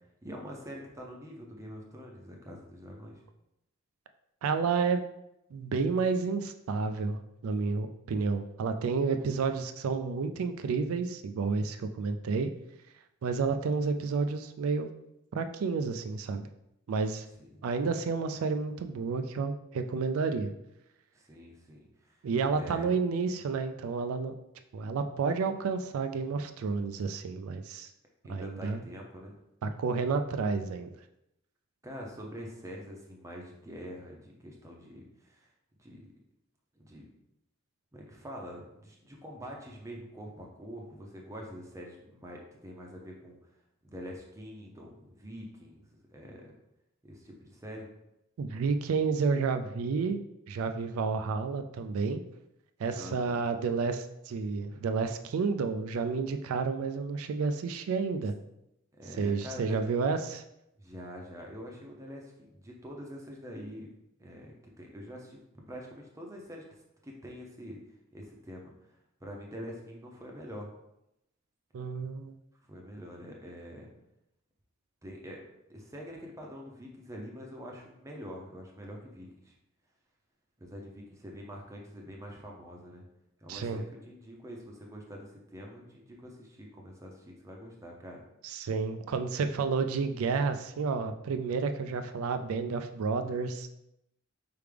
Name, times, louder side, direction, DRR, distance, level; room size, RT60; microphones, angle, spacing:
voice 1, 0.2-3.2 17.4-17.6 21.1-22.2 22.5-22.9 28.2-29.4 31.8-35.5 35.8-36.1 36.7-37.1 37.9-43.4 43.8-46.5 47.0-47.9 52.9-53.4 59.0-59.8 60.8-63.9 64.2-65.4 65.7-66.6 67.0-67.8 68.1-70.7 72.7-73.9 75.0-79.6 80.6-83.0 83.4-88.2, equal, 15° right, -1 dB, 0.6 m, -45 dB
voice 2, 4.4-5.0 5.5-12.5 13.2-14.9 15.3-16.4 16.9-17.3 17.6-20.5 22.2-24.3 24.7-27.9 28.3-28.8 29.6-30.9 48.4-50.2 50.5-52.2 52.8-58.3 59.2-60.4 71.7-72.3 83.5-83.8 88.4-93.7, right 4 dB, 85° right, 8 dB, 0.4 m, -30 dB
4.6 x 3.4 x 3.3 m, 0.84 s
head